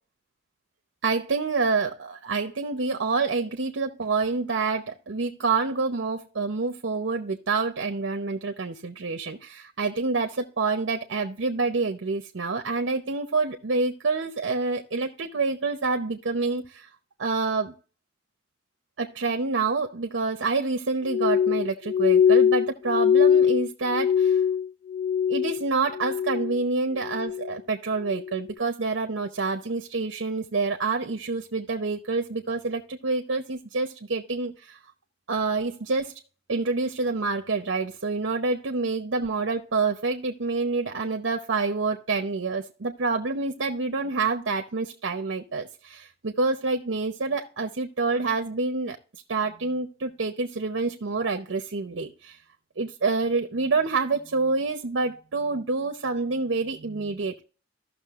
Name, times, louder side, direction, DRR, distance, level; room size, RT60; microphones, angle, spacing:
voice 1, 1.0-16.9 17.2-17.7 19.0-24.4 25.3-34.8 35.3-36.1 36.5-49.0 49.3-52.4 52.8-57.4, right 4 dB, 85° right, 4 dB, 0.8 m, -27 dB
Glass, 21.1-25.6 25.9-26.6 27.0-27.5 28.1-28.4, left 8 dB, 65° left, 0.3 m, -22 dB
15.0 x 6.2 x 2.4 m, 0.35 s
head